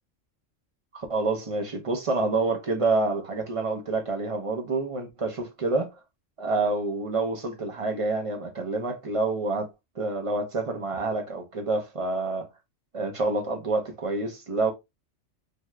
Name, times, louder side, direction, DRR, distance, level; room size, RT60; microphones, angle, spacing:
voice 1, 0.9-5.9 6.4-9.7 10.0-12.5 12.9-14.7, right 3 dB, 45° right, 0.4 m, -27 dB
2.7 x 2.3 x 3.1 m
omnidirectional pair, 1.4 m